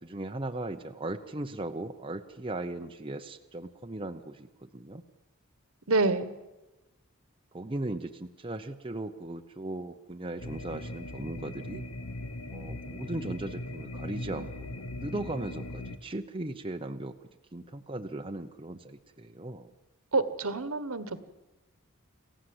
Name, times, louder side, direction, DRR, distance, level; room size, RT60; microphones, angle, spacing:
voice 1, 0.0-5.0 7.5-11.9 12.5-14.7 15.0-17.1 17.5-19.7, right 2 dB, 25° right, 5 dB, 0.8 m, -37 dB
voice 2, 5.9-6.3 20.1-21.2, right 3 dB, 70° right, 13 dB, 1.4 m, -27 dB
sound 1, 10.4-16.0, left 1 dB, 85° left, 1.4 m, -39 dB
28.0 x 15.0 x 7.9 m, 1.1 s
head